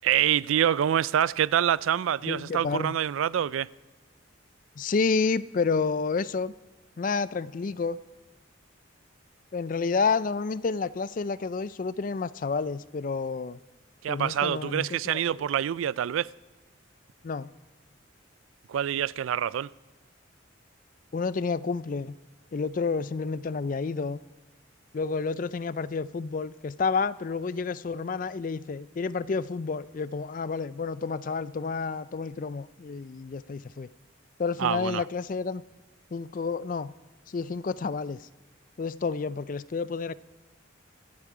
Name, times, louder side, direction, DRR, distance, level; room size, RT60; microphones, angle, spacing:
voice 1, 0.0-3.7 14.0-16.3 18.7-19.7 34.6-35.0, right 10 dB, 85° right, 0.3 m, -26 dB
voice 2, 2.2-3.0 4.8-6.5 7.0-8.0 9.5-13.6 14.1-15.5 17.2-17.5 21.1-22.2 22.5-24.2 24.9-33.9 34.4-35.6 36.1-36.9 37.3-38.3 38.8-40.1, left 4 dB, 40° left, 0.4 m, -30 dB
25.0 x 8.3 x 4.9 m
head